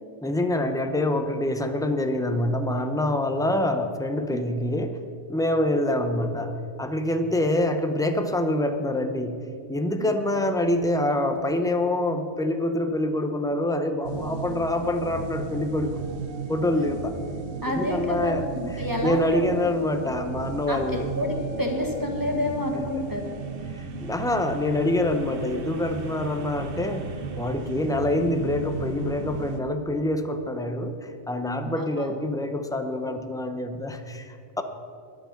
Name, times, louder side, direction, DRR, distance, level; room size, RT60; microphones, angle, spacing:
voice 1, 0.2-5.0 5.3-9.4 9.7-16.0 16.5-17.1 17.6-18.4 19.0-21.1 22.7-22.8 23.7-27.1 27.4-34.6, left 1 dB, 5° left, 7 dB, 0.5 m, -26 dB
sound 1, 14.0-29.6, right 4 dB, 55° right, 1.0 m, -35 dB
voice 2, 17.6-19.5 20.7-23.2 31.8-32.1, left 1 dB, 15° right, 1 dB, 1.3 m, -29 dB
13.0 x 9.4 x 5.9 m, 2.4 s
omnidirectional pair, 1.3 m